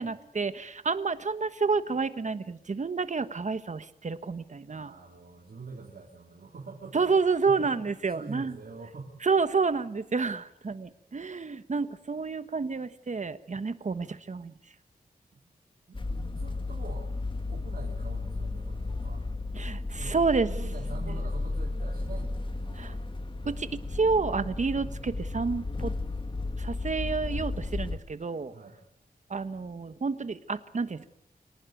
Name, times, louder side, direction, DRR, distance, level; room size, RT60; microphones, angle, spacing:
voice 1, 0.0-4.9 6.9-8.6 9.2-14.5 19.6-20.5 21.0-21.2 22.8-22.9 23.4-25.9 26.6-28.5 29.3-31.1, right 4 dB, 50° right, 12 dB, 1.3 m, -29 dB
voice 2, 4.7-9.2 15.3-15.4 15.9-17.1 17.5-19.2 19.9-20.2 20.4-23.0 28.5-28.8, right 4 dB, 70° right, -1 dB, 3.1 m, -45 dB
sound 1, 15.9-28.0, left 2 dB, 30° left, 2.0 m, -34 dB
25.0 x 18.5 x 9.2 m, 0.78 s
wide cardioid pair, 115°, 16 cm